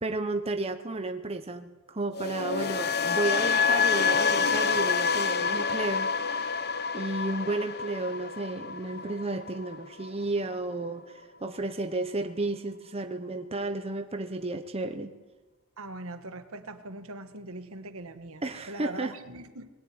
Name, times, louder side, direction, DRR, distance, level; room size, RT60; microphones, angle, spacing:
voice 1, 0.0-6.6 6.9-15.1 18.4-19.1, right 2 dB, 30° right, 6 dB, 1.1 m, -32 dB
sound 1, 2.1-10.2 10.5-10.9, left 5 dB, 50° left, 0.9 m, -28 dB
voice 2, 15.8-19.7, right 2 dB, 65° right, 8 dB, 1.7 m, -41 dB
21.0 x 18.0 x 9.7 m, 1.2 s
head